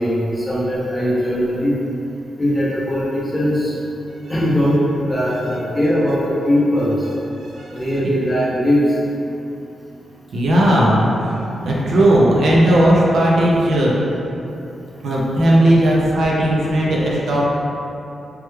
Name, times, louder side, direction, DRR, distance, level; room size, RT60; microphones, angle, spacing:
voice 1, 0.0-1.7 2.4-3.7 4.3-4.8 5.1-6.9 7.7-8.8, equal, 5° left, -8 dB, 0.6 m, -19 dB
voice 2, 7.4-7.9 10.3-13.9 15.0-17.5, right 1 dB, 60° right, -4 dB, 0.4 m, -16 dB
3.2 x 2.2 x 3.0 m, 2.8 s
wide cardioid pair, 160°, 0 cm